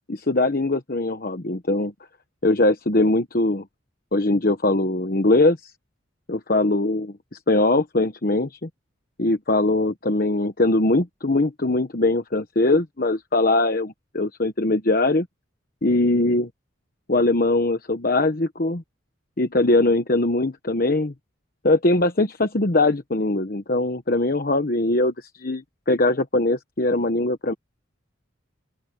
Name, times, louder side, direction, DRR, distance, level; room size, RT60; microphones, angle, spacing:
voice 1, 0.1-1.9 2.4-3.6 4.1-5.7 6.3-8.7 9.2-15.3 15.8-16.5 17.1-18.8 19.4-21.1 21.6-27.5, left 2 dB, 45° left, 1.1 m, -21 dB
open air
head